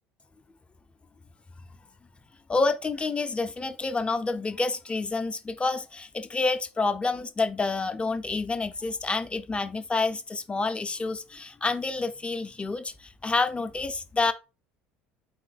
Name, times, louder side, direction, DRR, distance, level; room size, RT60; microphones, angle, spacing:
voice 1, 2.5-14.3, left 3 dB, 20° left, 0.5 m, -28 dB
4.2 x 2.1 x 4.0 m
hypercardioid pair, 70°, 6 cm